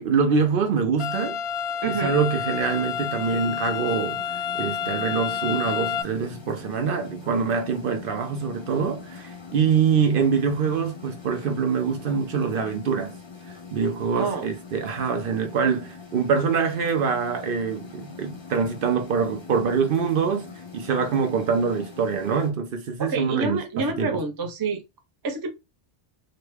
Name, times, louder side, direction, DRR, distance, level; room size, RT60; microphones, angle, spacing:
voice 1, 0.0-1.4 1.9-13.1 13.7-24.1, right 6 dB, 65° right, 0.7 m, -24 dB
sound 1, 1.0-6.0, left 7 dB, 75° left, 0.8 m, -29 dB
voice 2, 1.8-2.2 14.1-14.5 23.0-24.8 25.2-25.5, right 4 dB, 30° right, 0.5 m, -28 dB
sound 2, 2.5-22.5, left 5 dB, 30° left, 0.7 m, -43 dB
3.0 x 2.2 x 3.1 m
omnidirectional pair, 1.0 m